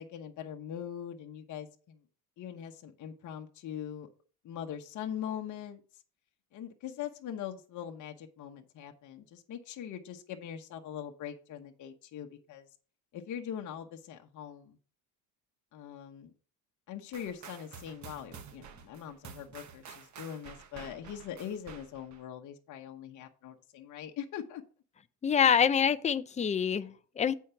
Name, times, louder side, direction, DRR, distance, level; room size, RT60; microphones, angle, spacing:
voice 1, 0.0-2.0 2.4-4.1 4.4-6.0 6.5-12.7 13.1-14.8 15.7-16.3 16.9-24.6, left 9 dB, 45° left, 1.0 m, -42 dB
sound 1, 17.1-22.2, right 7 dB, 40° right, 1.2 m, -50 dB
voice 2, 25.2-27.3, left 7 dB, 15° left, 0.4 m, -26 dB
8.5 x 4.6 x 5.7 m
cardioid pair, 115°, 43 cm